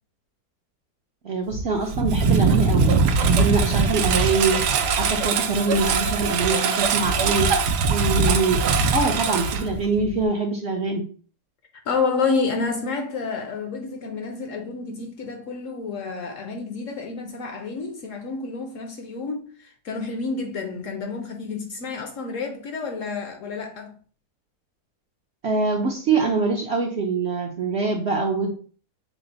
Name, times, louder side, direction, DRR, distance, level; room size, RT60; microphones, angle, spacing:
voice 1, 1.2-8.6 8.9-11.0 25.4-28.5, right 3 dB, 60° right, 0.7 m, -24 dB
Engine, 1.5-10.3, right 4 dB, 85° right, 1.2 m, -21 dB
voice 2, 11.9-23.9, left 4 dB, 65° left, 0.8 m, -29 dB
5.8 x 2.0 x 3.8 m
omnidirectional pair, 1.7 m